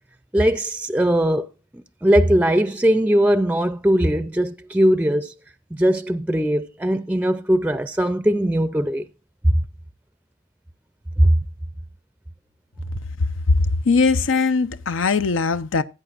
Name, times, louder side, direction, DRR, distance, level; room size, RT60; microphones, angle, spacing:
voice 1, 0.3-1.5 2.0-5.3 5.7-9.1 9.5-9.6 11.2-11.4, equal, 10° right, 0.4 m, -19 dB
voice 2, 13.2-15.8, left 4 dB, 85° left, 0.6 m, -20 dB
16.0 x 8.7 x 2.4 m
head